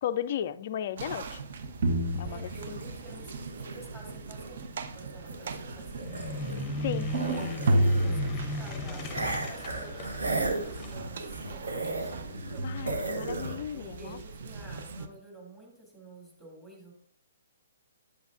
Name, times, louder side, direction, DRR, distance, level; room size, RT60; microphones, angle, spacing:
voice 1, 0.0-1.4 2.2-2.8 6.8-7.1 12.6-14.2, left 10 dB, 40° left, 0.3 m, -35 dB
sound 1, 1.0-15.1, right 1 dB, 45° right, 0.6 m, -34 dB
voice 2, 2.2-6.4 7.1-12.9 13.7-16.9, right 2 dB, 10° right, 2.3 m, -50 dB
sound 2, 2.5-6.7 7.0-8.3 9.1-12.6 12.9-13.6, right 2 dB, 65° right, 1.1 m, -36 dB
sound 3, 6.0-11.0, left 3 dB, 15° left, 0.7 m, -37 dB
8.4 x 7.9 x 2.5 m
figure-of-eight pair, 125°, 0 cm